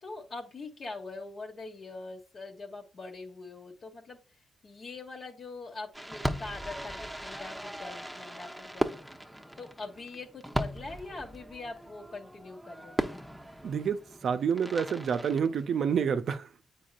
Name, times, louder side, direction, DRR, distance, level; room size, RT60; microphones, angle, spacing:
voice 1, 0.0-4.2 4.6-8.9 9.6-13.0, left 3 dB, 50° left, 1.4 m, -43 dB
Fireworks, 5.9-16.2, equal, 5° right, 0.9 m, -38 dB
voice 2, 13.6-16.5, right 7 dB, 60° right, 0.5 m, -28 dB
8.4 x 4.7 x 2.5 m
hypercardioid pair, 45°, 0 cm